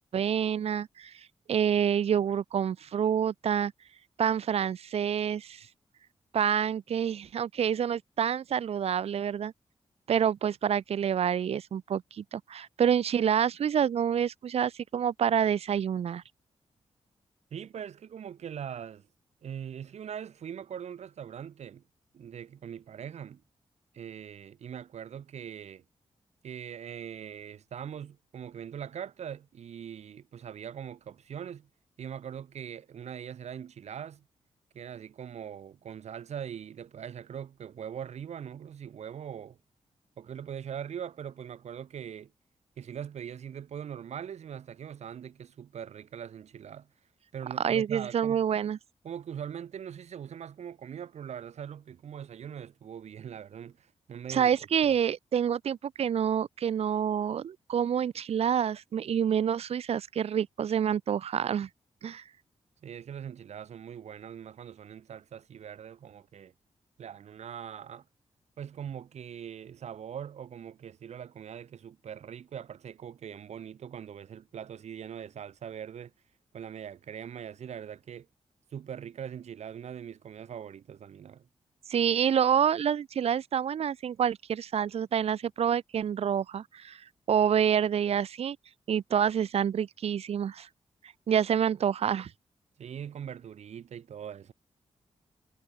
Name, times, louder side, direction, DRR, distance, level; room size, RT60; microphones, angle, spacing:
voice 1, 0.1-1.1 1.5-3.7 4.2-5.7 6.3-9.5 10.1-16.2 47.6-48.8 54.3-61.7 62.0-62.2 81.9-87.0 87.3-88.6 88.9-90.7 91.3-92.3, right 8 dB, 65° right, 0.6 m, -27 dB
voice 2, 17.5-19.1 19.4-21.8 22.1-23.4 23.9-25.8 26.4-31.7 32.0-34.2 34.7-39.6 40.2-42.3 42.8-46.9 47.3-48.4 49.0-54.5 54.8-54.9 62.8-66.5 67.0-68.1 68.6-76.1 76.5-78.3 78.7-81.5 92.8-94.5, right 8 dB, 85° right, 7.1 m, -41 dB
cardioid pair, 85°, 11 cm